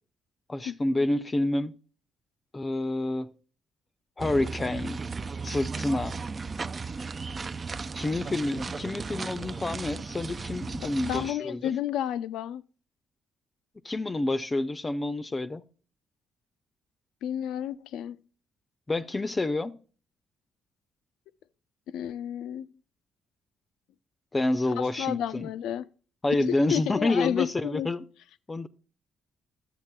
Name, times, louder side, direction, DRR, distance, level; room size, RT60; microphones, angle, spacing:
voice 1, 0.5-1.8 2.5-3.3 4.2-5.0 5.4-6.2 8.0-11.7 13.8-15.6 18.9-19.7 24.3-25.5 26.2-28.0 28.5-28.7, left 2 dB, 20° left, 0.5 m, -28 dB
sound 1, 4.2-11.3, right 4 dB, 35° right, 0.3 m, -36 dB
voice 2, 11.0-12.6 17.2-18.2 21.9-22.7 24.8-25.9 26.5-27.9, left 10 dB, 85° left, 0.4 m, -31 dB
12.0 x 8.0 x 2.2 m
cardioid pair, 90°, 0 cm